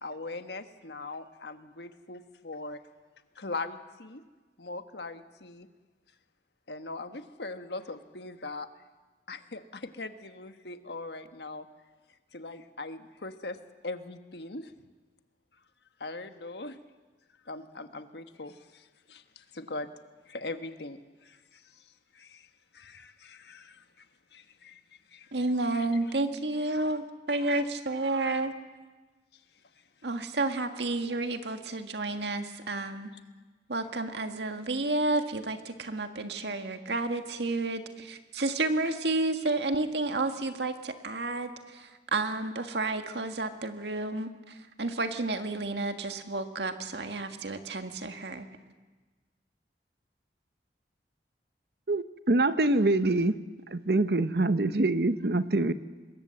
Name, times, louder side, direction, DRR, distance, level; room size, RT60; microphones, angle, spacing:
voice 1, 0.0-2.8 3.3-4.2 4.6-5.7 6.7-8.7 9.3-11.7 12.3-13.6 13.8-14.7 16.0-16.8 17.4-19.9 20.3-21.8 22.1-22.5 22.7-24.1 24.3-24.8 25.1-25.3, left 3 dB, 75° left, 8 dB, 1.4 m, -41 dB
voice 2, 25.3-28.5 30.0-33.1 33.7-48.5, right 2 dB, 80° right, 7 dB, 1.8 m, -31 dB
voice 3, 51.9-53.3 53.7-55.7, right 2 dB, 60° right, 12 dB, 0.9 m, -25 dB
25.5 x 21.5 x 7.7 m, 1.3 s
head